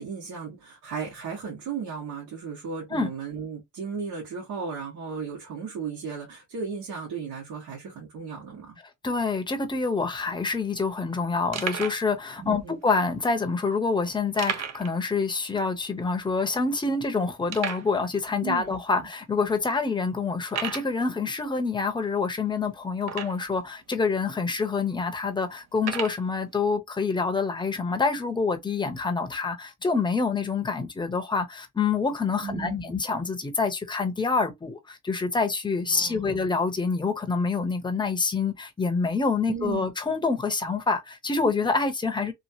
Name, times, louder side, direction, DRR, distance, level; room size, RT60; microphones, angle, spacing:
voice 1, 0.0-8.8 12.4-12.8 18.4-18.7 19.0-19.1 32.4-32.9 35.9-36.4 39.5-39.8, right 6 dB, 80° right, 1.4 m, -35 dB
voice 2, 9.0-42.3, left 4 dB, 15° left, 0.8 m, -27 dB
sound 1, 10.1-10.2 10.3-10.5 11.0-11.1 11.5-12.1 12.8-12.9 14.4-15.0 15.3-15.4 15.8-15.9 16.5-16.6 17.5-17.9 18.7-18.8 19.4-19.5 20.5-20.9 23.0-23.6 24.4-24.5 25.8-26.2, right 8 dB, 60° right, 0.7 m, -33 dB
3.0 x 2.4 x 2.7 m
cardioid pair, 90°, 30 cm